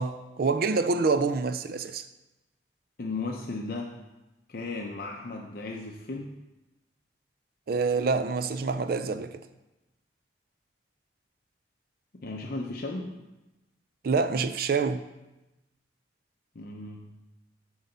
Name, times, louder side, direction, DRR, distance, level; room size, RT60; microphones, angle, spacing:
voice 1, 0.0-2.0 7.7-9.4 14.0-15.1, right 4 dB, 55° right, 0.4 m, -26 dB
voice 2, 3.0-3.9 4.5-6.3 12.2-13.1 16.5-17.1, left 3 dB, 55° left, 0.6 m, -35 dB
8.2 x 4.0 x 6.6 m
head